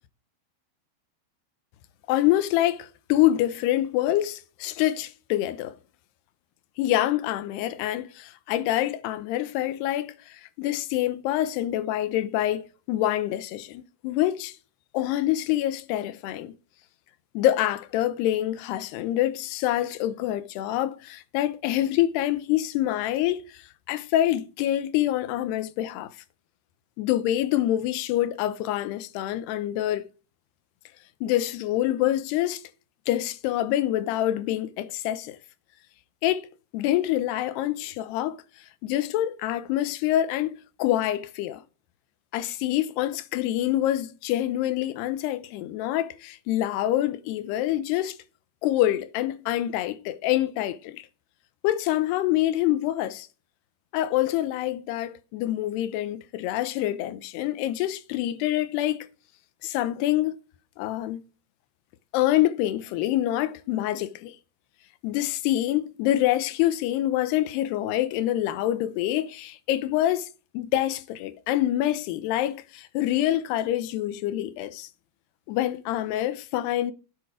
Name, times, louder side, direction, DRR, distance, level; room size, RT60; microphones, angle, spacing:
voice 1, 2.1-5.8 6.8-14.6 14.9-16.5 17.3-26.1 27.0-30.1 31.2-32.6 33.1-35.4 36.2-36.5 36.7-38.4 38.8-41.6 42.3-48.2 48.6-51.1 51.6-53.3 53.9-59.1 59.6-60.4 60.8-61.2 62.1-64.4 65.0-70.3 70.5-74.9 75.5-76.9, left 13 dB, 85° left, 2.9 m, -26 dB
11.0 x 8.2 x 4.9 m
omnidirectional pair, 4.6 m